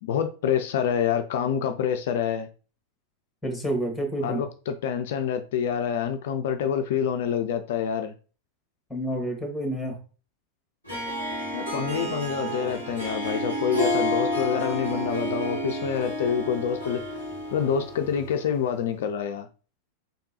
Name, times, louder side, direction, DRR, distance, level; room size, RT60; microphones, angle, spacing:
voice 1, 0.0-2.5 4.2-8.1 11.5-17.0 17.5-19.5, left 8 dB, 55° left, 0.3 m, -27 dB
voice 2, 3.4-4.4 8.9-10.0, right 1 dB, ahead, 1.5 m, -29 dB
Harp, 10.9-18.6, equal, 85° right, 2.1 m, -30 dB
4.0 x 3.6 x 2.7 m
figure-of-eight pair, 90°, 0 cm